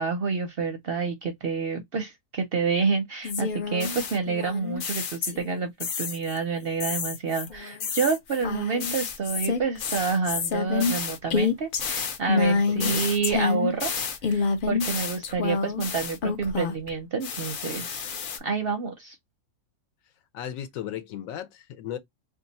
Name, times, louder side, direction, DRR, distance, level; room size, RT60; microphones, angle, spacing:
voice 1, 0.0-13.9 14.2-18.0 18.4-19.2, right 5 dB, 60° right, 0.6 m, -28 dB
sound 1, 3.2-5.5 5.8-6.4 6.8-16.9 17.2-18.4, left 5 dB, 55° left, 0.5 m, -28 dB
voice 2, 12.7-13.1 20.3-22.0, left 10 dB, 75° left, 1.0 m, -36 dB
2.6 x 2.4 x 3.9 m
omnidirectional pair, 1.5 m